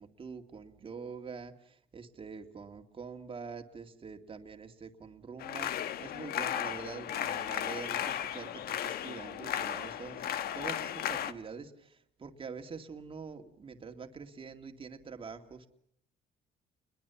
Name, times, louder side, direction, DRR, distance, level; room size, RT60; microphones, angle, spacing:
voice 1, 0.0-15.7, right 5 dB, 30° right, 4 dB, 2.4 m, -45 dB
sound 1, 5.4-11.3, left 10 dB, 65° left, 1.3 m, -35 dB
29.5 x 22.0 x 7.1 m, 0.69 s
cardioid pair, 110°, 17 cm